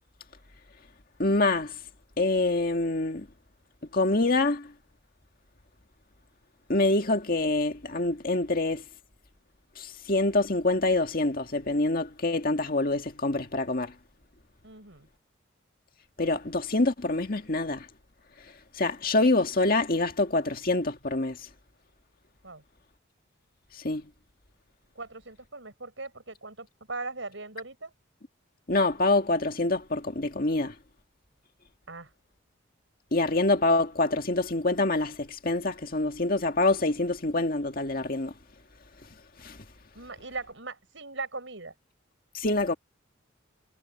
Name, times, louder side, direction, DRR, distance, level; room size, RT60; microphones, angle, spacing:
voice 1, 1.2-1.7 2.2-3.3 3.9-4.7 6.7-8.8 9.8-13.9 16.2-17.9 18.8-21.4 23.8-24.0 28.7-30.7 33.1-38.3 39.4-39.6 42.3-42.7, left 2 dB, 45° left, 1.9 m, -26 dB
voice 2, 14.6-15.1 22.4-22.6 25.0-27.9 31.9-32.1 39.9-41.7, right 3 dB, 65° right, 7.2 m, -39 dB
head